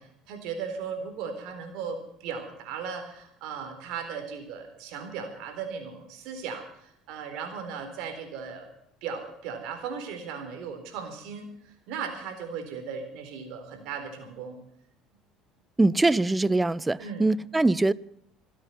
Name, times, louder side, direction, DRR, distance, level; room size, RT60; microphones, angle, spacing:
voice 1, 0.0-8.7 9.0-14.6 17.0-17.3, right 6 dB, 70° right, 4.0 m, -37 dB
voice 2, 15.8-17.9, right 2 dB, 15° right, 0.6 m, -23 dB
25.5 x 8.7 x 5.7 m
hypercardioid pair, 75°, 0 cm